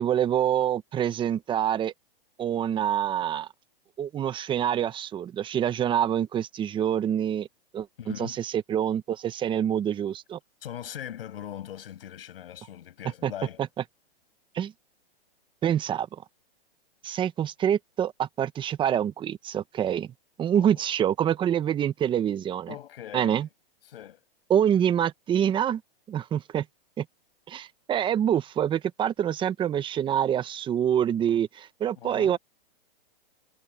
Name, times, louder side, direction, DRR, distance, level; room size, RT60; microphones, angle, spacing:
voice 1, 0.0-1.9 2.4-3.5 4.0-7.5 7.7-7.9 8.2-10.4 13.2-13.3 14.5-14.7 15.6-16.1 17.0-20.1 20.4-22.7 23.1-23.5 24.5-25.8 26.1-26.6 27.0-27.1 27.5-32.4, right 9 dB, 15° right, 1.0 m, -26 dB
voice 2, 8.0-8.4 10.6-13.7 20.5-20.9 22.7-23.5 23.8-24.2 32.0-32.4, left 11 dB, 70° left, 6.0 m, -40 dB
hypercardioid pair, 140°, 30 cm